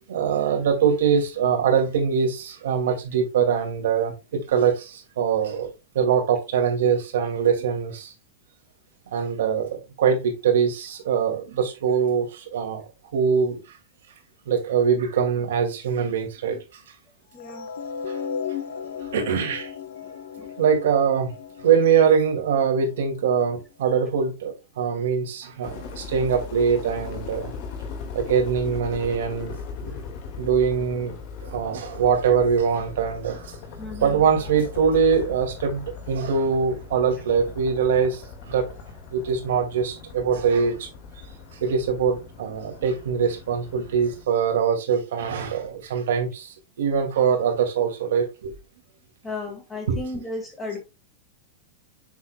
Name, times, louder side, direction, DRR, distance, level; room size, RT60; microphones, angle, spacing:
voice 1, 0.1-8.1 9.1-12.8 13.1-13.6 14.5-16.6 18.1-18.2 19.1-19.7 20.6-21.3 21.6-27.5 28.1-29.5 29.8-30.0 30.4-31.1 31.4-33.6 34.0-38.2 38.5-38.7 39.1-40.9 41.6-48.5 49.9-50.0 50.7-50.8, right 6 dB, 80° right, 2.1 m, -23 dB
voice 2, 17.3-17.7 20.4-20.5 29.9-30.0 33.8-34.3 49.2-50.8, left 2 dB, 10° left, 1.9 m, -34 dB
sound 1, 17.4-23.6, left 7 dB, 70° left, 0.9 m, -36 dB
sound 2, 25.6-44.2, left 5 dB, 40° left, 1.8 m, -39 dB
7.1 x 6.3 x 2.2 m
supercardioid pair, 170°, 0 cm